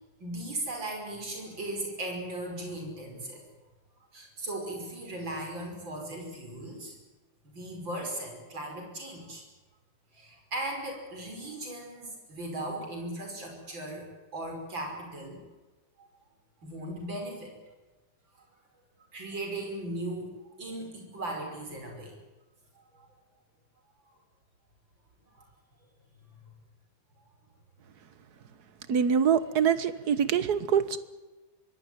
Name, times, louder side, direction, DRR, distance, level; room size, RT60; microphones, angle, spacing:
voice 1, 0.2-3.4 4.1-7.0 7.5-9.4 10.1-15.4 16.0-16.1 16.6-17.5 19.1-22.1 22.7-23.1 25.4-25.5, right 1 dB, 85° right, 6.3 m, -37 dB
voice 2, 28.9-31.0, right 7 dB, 60° right, 1.8 m, -24 dB
24.5 x 18.0 x 9.4 m
omnidirectional pair, 2.0 m